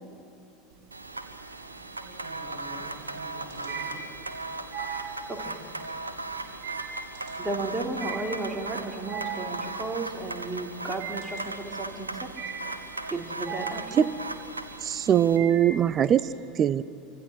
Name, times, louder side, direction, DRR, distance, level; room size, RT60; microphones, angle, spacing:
sound 1, 0.7-1.3 1.7-16.2, right 6 dB, 50° right, 3.5 m, -39 dB
sound 2, 0.9-15.4, right 3 dB, 85° right, 1.1 m, -38 dB
voice 1, 2.0-4.1, right 1 dB, 85° left, -7 dB, 7.3 m, -46 dB
voice 2, 7.4-12.1 13.1-14.1, right 2 dB, 10° right, 0 dB, 3.7 m, -34 dB
voice 3, 14.8-16.8, right 9 dB, 35° right, 17 dB, 0.7 m, -22 dB
27.0 x 25.0 x 6.3 m, 2.7 s
figure-of-eight pair, 80°, 0 cm